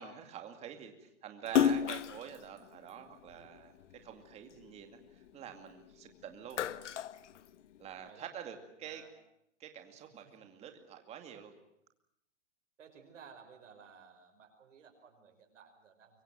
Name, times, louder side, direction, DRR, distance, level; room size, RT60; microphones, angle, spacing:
voice 1, 0.0-3.7 4.0-5.0 5.3-6.6 7.8-9.0 9.6-11.5, right 8 dB, 15° right, 6 dB, 2.4 m, -47 dB
Splash splatter, 1.4-4.0 4.5-5.9 6.3-8.0, left 9 dB, 70° left, 1.1 m, -33 dB
voice 2, 8.8-9.1 12.8-16.2, right 6 dB, 80° right, 4 dB, 5.7 m, -56 dB
25.0 x 24.0 x 7.6 m, 0.78 s
hypercardioid pair, 160°, 37 cm